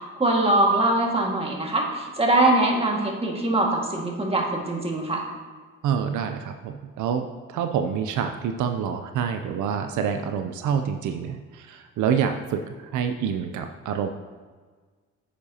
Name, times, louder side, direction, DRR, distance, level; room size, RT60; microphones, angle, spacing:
voice 1, 0.2-5.2, right 2 dB, 20° right, -1 dB, 1.8 m, -22 dB
voice 2, 5.8-12.6 12.9-14.1, right 7 dB, 75° right, 7 dB, 0.6 m, -27 dB
10.0 x 8.7 x 2.8 m, 1.5 s
cardioid pair, 90°, 30 cm